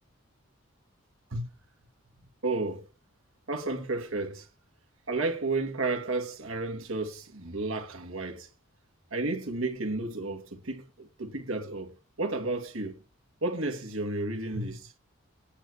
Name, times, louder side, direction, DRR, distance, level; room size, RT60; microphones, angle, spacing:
voice 1, 2.4-2.9 3.5-4.5 5.1-8.5 9.1-11.9 12.2-13.0 13.4-15.0, right 2 dB, 70° right, 2.5 m, -32 dB
9.9 x 8.2 x 4.6 m
head